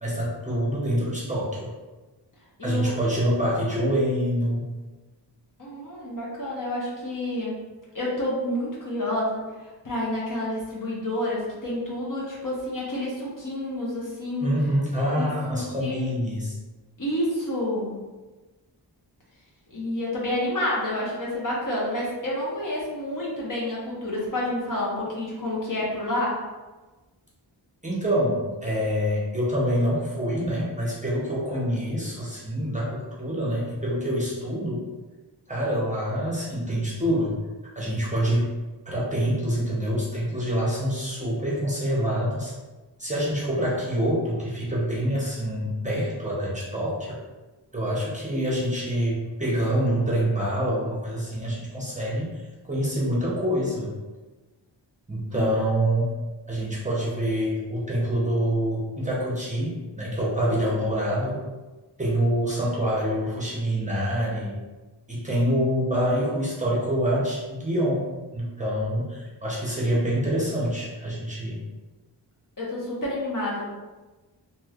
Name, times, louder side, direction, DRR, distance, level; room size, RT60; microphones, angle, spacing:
voice 1, 0.0-1.7 2.6-4.6 14.4-16.6 27.8-34.8 35.5-37.4 37.7-38.6 38.9-42.5 43.0-47.2 47.7-52.4 52.6-53.9 55.1-56.2 56.5-61.4 62.0-64.6 65.1-68.1 68.3-71.6, equal, 15° right, -6 dB, 0.7 m, -26 dB
voice 2, 2.6-2.9 5.6-7.5 7.9-9.4 9.8-14.5 15.1-16.1 17.0-18.0 19.7-26.4 55.3-55.8 72.6-73.6, left 1 dB, 45° left, -5 dB, 0.9 m, -29 dB
3.0 x 2.7 x 2.4 m, 1.2 s
wide cardioid pair, 70°, 44 cm